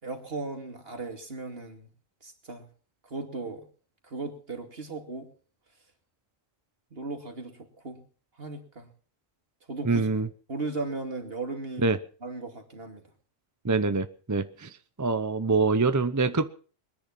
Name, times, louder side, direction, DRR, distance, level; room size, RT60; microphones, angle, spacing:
voice 1, 0.0-1.9 2.2-2.7 3.0-3.7 4.0-5.3 6.9-8.0 8.4-8.9 9.7-10.1 10.5-11.9 12.2-13.0, right 3 dB, 50° right, 5 dB, 2.8 m, -36 dB
voice 2, 9.8-10.3 11.8-12.0 13.6-14.7 15.0-16.5, right 3 dB, 20° right, 12 dB, 0.5 m, -25 dB
22.0 x 10.5 x 5.9 m, 0.42 s
omnidirectional pair, 1.3 m